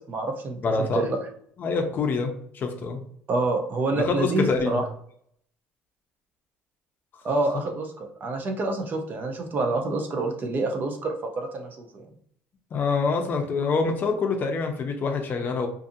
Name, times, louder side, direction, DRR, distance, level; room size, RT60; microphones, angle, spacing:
voice 1, 0.1-1.2 3.3-4.8 7.2-12.1, right 2 dB, 40° right, 3 dB, 0.6 m, -27 dB
voice 2, 0.6-1.1 1.6-3.0 4.0-4.8 7.1-7.2 12.7-15.7, left 4 dB, 40° left, 4 dB, 0.5 m, -26 dB
2.6 x 2.5 x 2.5 m, 0.66 s
cardioid pair, 115°, 5 cm